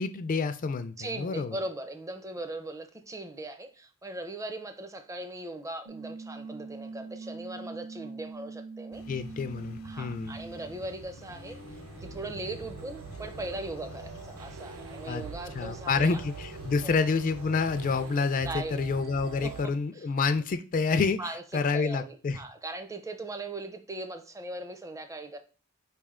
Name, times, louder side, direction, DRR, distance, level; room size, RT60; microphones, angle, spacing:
voice 1, 0.0-1.6 9.1-10.4 15.1-15.3 15.5-21.2 21.5-22.4, left 4 dB, 40° left, 0.3 m, -28 dB
voice 2, 1.0-9.0 9.8-11.6 12.0-16.2 16.8-17.0 18.4-18.8 19.4-19.5 20.0-20.1 21.2-25.4, right 2 dB, 15° right, 0.5 m, -39 dB
sound 1, 5.9-10.8, right 4 dB, 85° right, 1.5 m, -43 dB
sound 2, 8.9-18.1, left 1 dB, 80° left, 0.8 m, -47 dB
sound 3, 11.2-19.7, right 6 dB, 70° right, 0.3 m, -45 dB
4.5 x 3.2 x 3.6 m
head